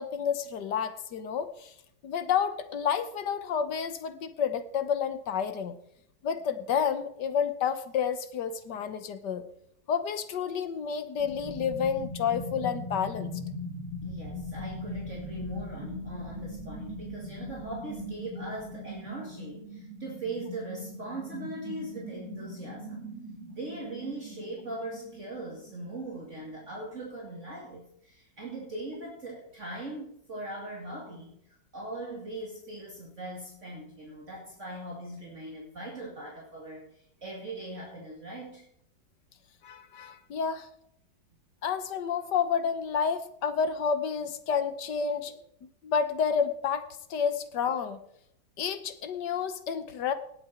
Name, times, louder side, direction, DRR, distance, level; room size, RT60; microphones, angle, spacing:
voice 1, 0.0-1.7 2.0-5.8 6.2-9.4 9.9-13.3 39.6-40.7 41.6-45.3 45.8-48.0 48.6-50.1, left 7 dB, 70° left, 11 dB, 1.6 m, -30 dB
sound 1, 11.2-26.7 26.9-27.0, left 1 dB, 65° right, 3.0 m, -40 dB
voice 2, 14.0-23.1 23.5-31.3 31.7-36.9 37.2-38.7 45.2-45.3, right 2 dB, 40° right, -3 dB, 2.6 m, -40 dB
18.5 x 7.9 x 4.4 m, 0.73 s
omnidirectional pair, 2.0 m